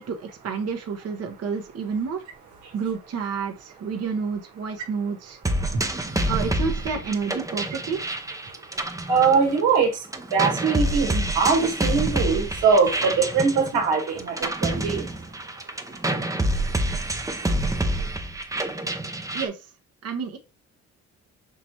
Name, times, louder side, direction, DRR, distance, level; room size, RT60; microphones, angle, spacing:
voice 1, 0.0-2.2 2.7-5.4 6.3-8.0 19.3-19.7 20.0-20.4, right 5 dB, 55° right, 1.0 m, -29 dB
sound 1, 5.4-9.8 10.1-19.5, right 1 dB, 10° right, 0.6 m, -27 dB
voice 2, 9.1-10.0 10.3-15.1, right 5 dB, 90° right, 1.5 m, -21 dB
5.9 x 3.0 x 2.9 m
cardioid pair, 90°, 30 cm